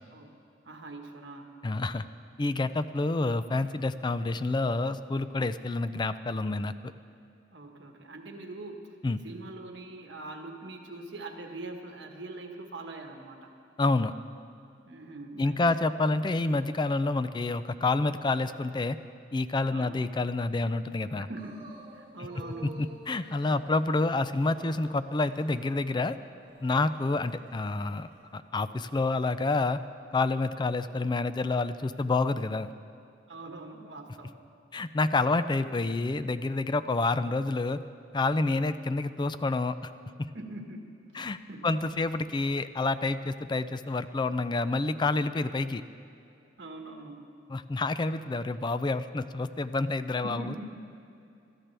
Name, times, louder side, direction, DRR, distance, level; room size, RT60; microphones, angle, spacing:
voice 1, 0.6-1.5 7.5-8.9 9.2-13.5 14.9-15.6 19.7-20.0 21.2-21.7 21.9-22.8 23.2-23.4 33.3-34.4 40.3-41.7 46.6-47.2 50.2-50.6, right 2 dB, 70° right, 2 dB, 1.5 m, -43 dB
voice 2, 1.6-2.0 2.4-6.7 9.0-9.2 13.8-14.1 15.4-19.0 19.3-21.3 22.6-26.2 26.6-29.8 30.1-32.7 34.7-37.8 38.1-39.8 40.2-40.3 41.2-41.4 41.6-45.8 47.5-50.5, left 3 dB, 25° left, 13 dB, 0.4 m, -28 dB
sound 1, 21.4-29.5 29.8-29.9, right 2 dB, 30° right, 2.7 m, -52 dB
22.0 x 14.0 x 3.4 m, 2.6 s
head